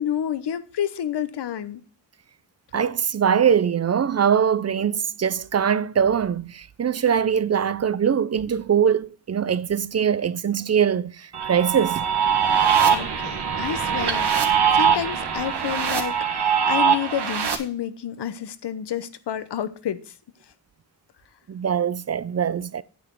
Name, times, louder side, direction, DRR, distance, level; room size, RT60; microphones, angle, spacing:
voice 1, 0.0-1.8 12.9-20.0, left 10 dB, 80° left, 0.9 m, -29 dB
voice 2, 2.7-12.1 21.5-22.8, right 8 dB, 40° right, 0.5 m, -22 dB
sound 1, 11.3-17.6, right 7 dB, 80° right, 1.6 m, -22 dB
9.2 x 8.1 x 4.6 m
wide cardioid pair, 100°, 40 cm